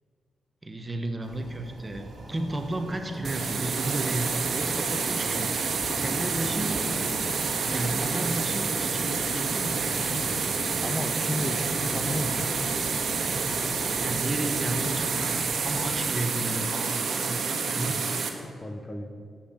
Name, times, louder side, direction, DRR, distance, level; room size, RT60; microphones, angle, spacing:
voice 1, 0.6-6.8 7.7-10.0 14.0-18.3, right 1 dB, 20° right, 6 dB, 1.0 m, -33 dB
Toilet flush, 1.2-16.3, right 2 dB, 35° right, 2.3 m, -42 dB
sound 1, 3.2-18.3, right 5 dB, 55° right, 1.5 m, -28 dB
sound 2, 4.7-16.6 16.9-17.0, left 1 dB, 35° left, 2.3 m, -45 dB
voice 2, 10.6-12.5 17.9-18.0 18.6-19.1, left 1 dB, 20° left, 6 dB, 0.9 m, -33 dB
11.5 x 7.5 x 9.1 m, 2.3 s
wide cardioid pair, 135°, 0 cm